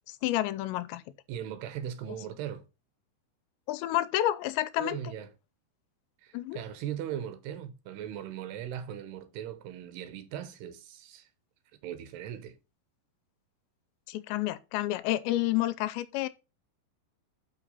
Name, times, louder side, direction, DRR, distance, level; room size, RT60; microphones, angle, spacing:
voice 1, 0.1-1.0 3.7-5.0 6.3-6.6 14.1-16.3, left 14 dB, 85° left, 2.9 m, -29 dB
voice 2, 1.3-2.7 4.8-5.3 6.2-11.3 11.8-12.6, right 10 dB, 75° right, 2.9 m, -39 dB
6.2 x 5.8 x 5.4 m
omnidirectional pair, 5.1 m